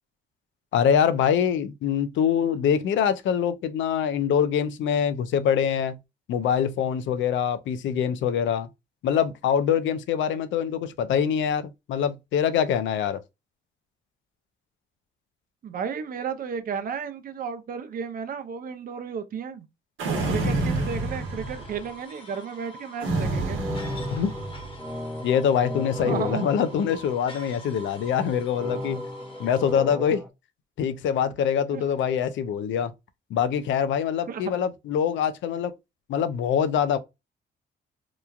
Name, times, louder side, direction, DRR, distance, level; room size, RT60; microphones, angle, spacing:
voice 1, 0.7-6.0 6.3-8.7 9.0-13.2 24.1-24.3 25.2-29.0 29.4-30.2 30.8-32.9 33.3-35.7 36.1-37.0, left 8 dB, 75° left, 0.5 m, -24 dB
voice 2, 15.6-19.7 20.3-23.6 26.0-26.5 31.7-31.8 34.3-34.4, right 6 dB, 45° right, 0.6 m, -33 dB
sound 1, 20.0-21.9 23.0-24.8, right 2 dB, 85° right, 0.9 m, -28 dB
sound 2, 20.1-29.7, equal, 25° left, 0.9 m, -45 dB
sound 3, 23.3-27.7 28.5-30.3, left 1 dB, ahead, 0.6 m, -36 dB
3.0 x 2.3 x 2.3 m
cardioid pair, 90°, 20 cm